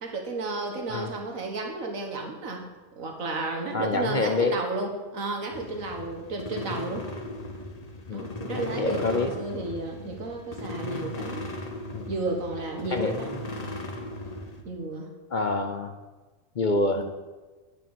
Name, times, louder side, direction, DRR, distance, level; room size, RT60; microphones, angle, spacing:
voice 1, 0.0-2.7 3.0-7.1 8.1-11.4 12.1-13.3 14.7-15.1 17.0-17.1, right 2 dB, 90° right, 2 dB, 2.0 m, -32 dB
voice 2, 3.7-4.5 8.1-9.3 11.9-12.1 12.9-13.1 15.3-15.9 16.6-17.0, left 3 dB, 50° left, 6 dB, 0.6 m, -27 dB
sound 1, 5.5-14.6, left 1 dB, 30° left, 1.1 m, -37 dB
10.0 x 6.1 x 7.0 m, 1.3 s
omnidirectional pair, 1.4 m